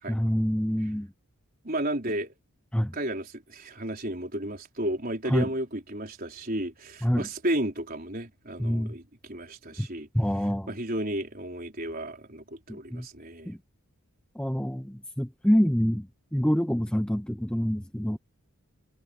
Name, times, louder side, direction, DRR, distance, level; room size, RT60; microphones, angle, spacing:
voice 1, 0.1-1.1 2.7-2.9 5.3-5.5 7.0-7.3 8.6-9.0 9.8-9.9 10.1-10.8 12.7-13.1 13.5-13.6 14.3-18.2, equal, 5° left, 0.7 m, -26 dB
voice 2, 1.6-2.3 2.9-10.1 10.7-13.5, right 1 dB, 40° right, 4.7 m, -33 dB
head